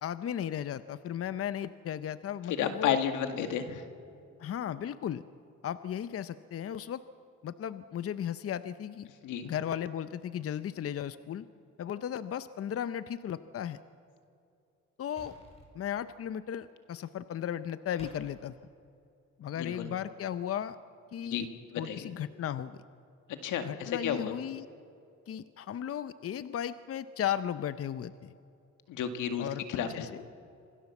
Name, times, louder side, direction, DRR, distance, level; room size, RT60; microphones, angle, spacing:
voice 1, 0.0-3.0 4.4-5.2 5.6-7.0 7.4-9.1 9.4-11.5 11.8-13.8 15.0-15.4 15.7-18.5 19.4-20.8 21.1-21.5 21.8-22.8 23.6-24.7 25.3-28.3 29.4-29.6 29.9-30.2, left 9 dB, 50° left, 13 dB, 0.7 m, -35 dB
voice 2, 2.5-3.9 9.2-9.5 19.6-19.9 21.2-22.1 23.3-24.3 28.9-30.1, left 8 dB, 90° left, 7 dB, 1.9 m, -32 dB
sound 1, 15.2-15.7 18.0-18.2, left 1 dB, 20° left, 5.5 m, -52 dB
26.5 x 17.0 x 7.2 m, 2.6 s
cardioid pair, 90°, 30 cm